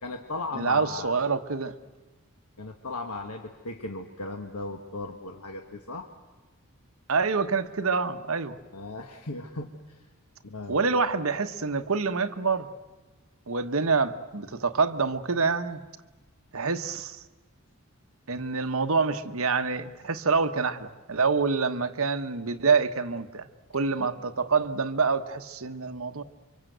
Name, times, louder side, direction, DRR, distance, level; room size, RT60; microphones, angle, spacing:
voice 1, 0.0-1.1 2.6-6.1 8.7-10.1 10.4-10.9 24.0-24.1, left 2 dB, 90° left, 1.5 m, -37 dB
voice 2, 0.5-1.8 7.1-8.6 10.7-12.7 13.5-15.8 16.5-17.2 18.3-23.5 23.7-26.2, right 4 dB, 70° right, 1.1 m, -26 dB
29.0 x 24.5 x 8.0 m
head